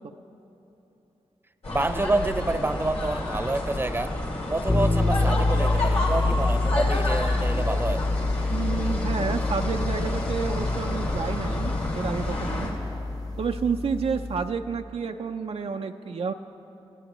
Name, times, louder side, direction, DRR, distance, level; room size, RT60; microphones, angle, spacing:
sound 1, 1.6-12.7, left 1 dB, 85° left, 2.8 m, -30 dB
voice 1, 1.7-4.1 4.5-8.0, right 2 dB, 20° right, 9 dB, 0.8 m, -28 dB
sound 2, 4.7-14.5, left 2 dB, 35° left, 1.2 m, -27 dB
voice 2, 8.5-12.7 13.4-16.3, right 5 dB, 65° right, 5 dB, 0.5 m, -30 dB
29.5 x 14.5 x 3.1 m, 3.0 s
cardioid pair, 60°, 11 cm